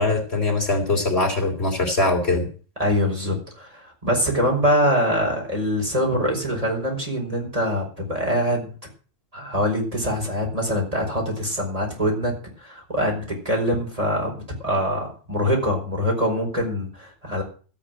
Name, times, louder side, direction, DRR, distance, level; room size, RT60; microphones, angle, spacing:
voice 1, 0.0-2.5, left 2 dB, 55° left, 4 dB, 3.6 m, -22 dB
voice 2, 2.8-8.7 9.3-12.3 12.6-17.4, equal, 30° right, -1 dB, 5.1 m, -24 dB
14.0 x 8.4 x 7.6 m, 0.39 s
omnidirectional pair, 1.3 m